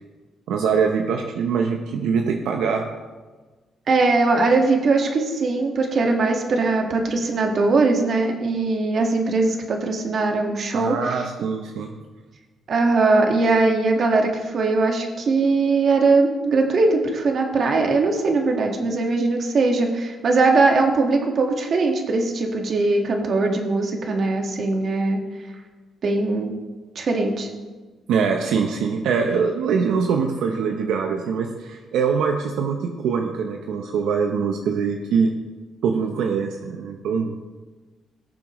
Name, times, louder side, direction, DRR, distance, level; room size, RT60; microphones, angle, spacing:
voice 1, 0.5-2.8 10.7-11.9 28.1-35.3 35.8-37.4, right 6 dB, 85° right, 3 dB, 0.8 m, -23 dB
voice 2, 3.9-11.2 12.7-25.2 26.0-26.5 27.0-27.5, right 3 dB, 55° right, 3 dB, 1.7 m, -20 dB
18.0 x 7.1 x 3.1 m, 1.3 s
cardioid pair, 90°, 0 cm